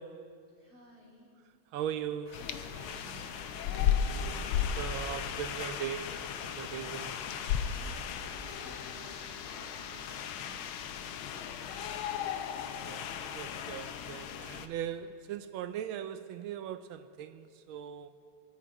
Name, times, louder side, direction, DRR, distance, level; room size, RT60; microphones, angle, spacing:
voice 1, 0.0-0.4 1.7-2.5 4.8-7.2 12.8-18.2, right 9 dB, 80° right, 1.3 m, -39 dB
voice 2, 0.6-1.3 2.8-4.0 7.7-12.4, right 1 dB, 30° right, 3.3 m, -57 dB
Stream, 2.2-10.0, equal, 45° left, 4.3 m, -52 dB
sound 1, 2.3-14.7, left 8 dB, 80° left, 1.5 m, -35 dB
24.0 x 10.0 x 4.9 m
omnidirectional pair, 2.3 m